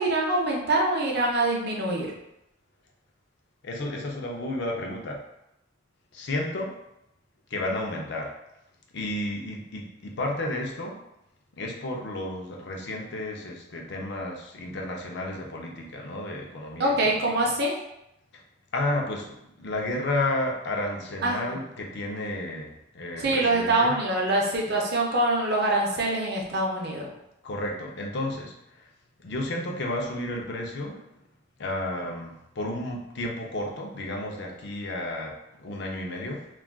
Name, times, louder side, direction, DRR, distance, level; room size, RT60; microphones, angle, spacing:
voice 1, 0.0-2.1 16.8-17.8 21.2-21.6 23.2-27.1, right 2 dB, 55° right, -1 dB, 0.6 m, -24 dB
voice 2, 3.6-5.2 6.1-6.7 7.5-8.3 8.9-11.0 11.6-17.5 18.7-24.0 27.4-28.9 29.2-31.0 31.6-36.5, left 1 dB, 55° left, 0 dB, 0.5 m, -32 dB
2.3 x 2.2 x 3.4 m, 0.84 s
head